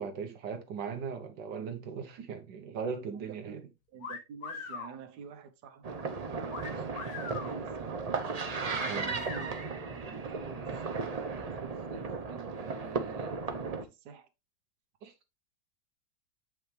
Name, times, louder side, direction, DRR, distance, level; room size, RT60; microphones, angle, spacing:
voice 1, 0.0-3.6 8.9-9.1 15.0-15.1, right 6 dB, 85° right, 1.6 m, -38 dB
voice 2, 3.1-8.2 8.8-14.3, right 6 dB, 65° right, 1.5 m, -49 dB
sound 1, 4.0-4.9 6.5-7.5 8.8-9.5, left 5 dB, 75° left, 2.1 m, -40 dB
sound 2, 5.8-13.8, right 4 dB, 45° right, 0.4 m, -36 dB
7.7 x 5.1 x 3.2 m
omnidirectional pair, 1.9 m